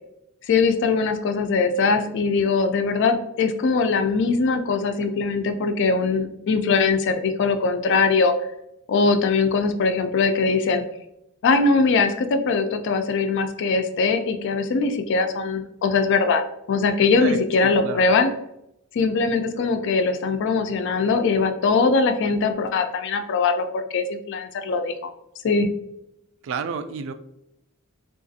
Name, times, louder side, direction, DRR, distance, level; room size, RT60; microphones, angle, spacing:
voice 1, 0.5-8.3 8.9-10.8 11.4-16.4 16.7-18.3 18.9-24.9 25.4-25.7, left 4 dB, 60° left, 8 dB, 0.4 m, -21 dB
voice 2, 17.1-18.1 26.4-27.1, right 5 dB, 65° right, 10 dB, 0.3 m, -31 dB
3.7 x 2.4 x 2.6 m, 0.84 s
head